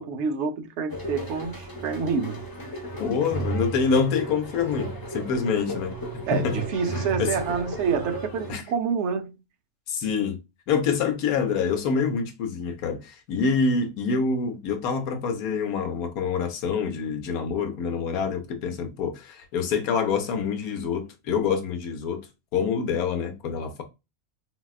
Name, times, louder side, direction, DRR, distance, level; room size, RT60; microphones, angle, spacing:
voice 1, 0.0-2.4 6.3-9.4, right 6 dB, 65° right, 0.8 m, -27 dB
sound 1, 0.9-8.5, right 1 dB, 25° left, 0.4 m, -34 dB
voice 2, 3.0-5.9 6.3-6.6 6.9-7.4 8.5-8.6 9.9-10.4 10.7-22.3 22.5-23.8, left 5 dB, 75° left, 1.1 m, -26 dB
4.0 x 2.2 x 2.3 m
omnidirectional pair, 1.6 m